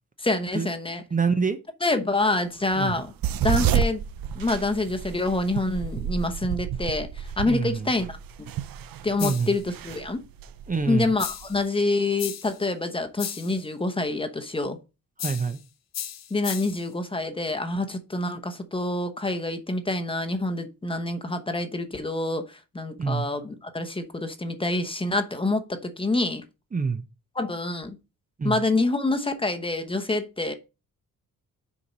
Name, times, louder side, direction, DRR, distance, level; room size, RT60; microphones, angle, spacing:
voice 1, 0.2-1.0 1.8-3.1 3.4-4.0 4.3-8.2 9.0-10.2 10.9-14.8 16.3-26.4 27.4-28.0 28.4-30.5, left 2 dB, 15° left, 0.9 m, -27 dB
voice 2, 1.1-1.6 2.8-3.0 7.5-7.9 9.2-9.5 10.7-11.1 15.2-15.6 23.0-23.3 26.7-27.0 28.4-28.6, right 5 dB, 25° right, 0.7 m, -26 dB
sound 1, 2.7-11.6, right 9 dB, 80° right, 0.7 m, -30 dB
sound 2, 9.2-9.6 11.2-11.6 12.2-12.6 13.2-13.6 15.2-15.6 15.9-16.9, left 10 dB, 50° left, 0.6 m, -35 dB
7.0 x 4.6 x 5.5 m
cardioid pair, 130°, 34 cm